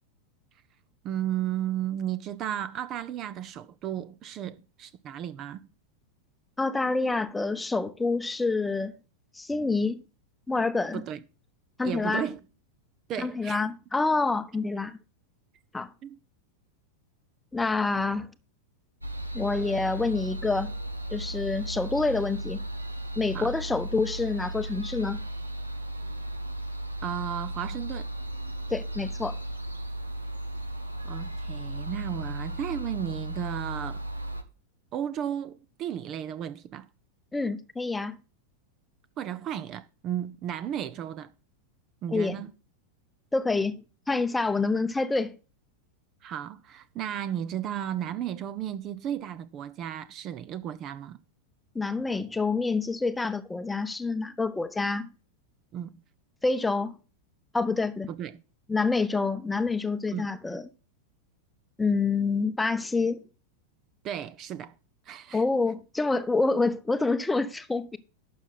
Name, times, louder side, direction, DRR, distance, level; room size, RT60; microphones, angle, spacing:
voice 1, 1.0-5.7 10.9-11.2 11.8-12.4 13.1-13.6 16.0-16.2 23.3-23.5 27.0-28.1 31.0-34.0 34.9-36.9 39.2-41.3 42.0-42.5 46.2-51.2 55.7-56.0 58.1-58.4 60.1-60.3 64.0-64.7 65.1-65.4, right 10 dB, 35° right, 0.7 m, -34 dB
voice 2, 6.6-8.9 9.3-10.0 10.5-11.0 11.8-12.3 13.2-15.0 15.7-15.9 17.5-18.3 19.3-20.7 21.1-22.6 23.2-25.2 28.7-29.4 37.3-38.2 42.1-42.5 43.3-43.8 44.1-45.4 51.7-55.1 56.4-57.0 57.5-58.1 58.7-60.7 61.8-63.2 65.3-68.0, left 3 dB, 10° left, 0.8 m, -27 dB
sound 1, 19.0-34.4, right 1 dB, 85° right, 1.1 m, -35 dB
12.0 x 7.1 x 4.0 m
figure-of-eight pair, 90°, 0 cm